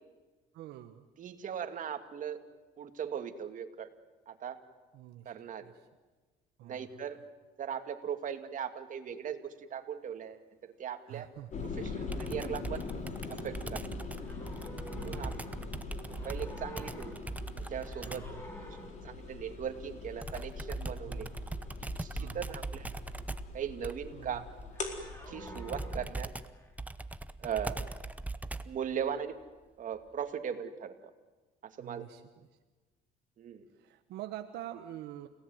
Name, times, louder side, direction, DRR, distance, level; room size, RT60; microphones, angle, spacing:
voice 1, 0.5-1.1 4.9-5.3 5.6-5.7 6.6-7.0 11.1-11.5 14.9-15.5 18.0-18.5 21.1-21.5 22.1-22.5 24.1-24.4 31.8-32.5 33.7-35.3, right 13 dB, 80° right, 7 dB, 1.3 m, -46 dB
voice 2, 1.2-2.4 2.8-3.9 4.3-4.6 5.2-5.7 6.6-7.2 7.6-11.3 11.8-12.8 13.3-13.8 14.9-15.6 15.9-17.3 17.7-18.2 19.0-21.3 21.8-22.9 23.5-24.4 25.3-26.3 27.4-27.9 28.7-29.4 29.8-31.1 31.6-32.0 33.4-33.7, right 8 dB, 50° right, 7 dB, 2.5 m, -39 dB
sound 1, 11.5-26.2, left 4 dB, 45° left, 4.5 m, -42 dB
Computer keyboard, 12.1-18.4 20.2-28.9, right 2 dB, 10° right, 1.0 m, -41 dB
sound 2, 14.2-15.9 16.1-17.4 17.7-19.2 24.7-26.7 27.8-28.0, equal, 15° left, 4.7 m, -50 dB
29.5 x 17.5 x 9.5 m, 1.2 s
cardioid pair, 110°, 17 cm